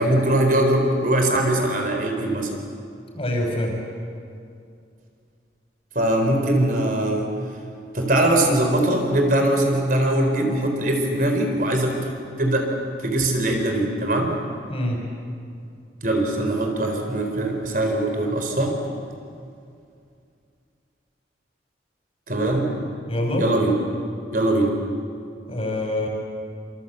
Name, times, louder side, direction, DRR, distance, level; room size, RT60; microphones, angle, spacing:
voice 1, 0.0-2.5 5.9-7.3 7.9-12.7 13.0-14.3 16.0-18.8 22.3-22.7 23.4-23.7 24.3-24.8, right 1 dB, 45° right, 3 dB, 4.1 m, -21 dB
voice 2, 3.1-3.7 14.7-15.0 23.1-23.5 25.5-26.1, left 1 dB, 30° left, 1 dB, 5.9 m, -25 dB
28.0 x 25.5 x 8.2 m, 2.4 s
head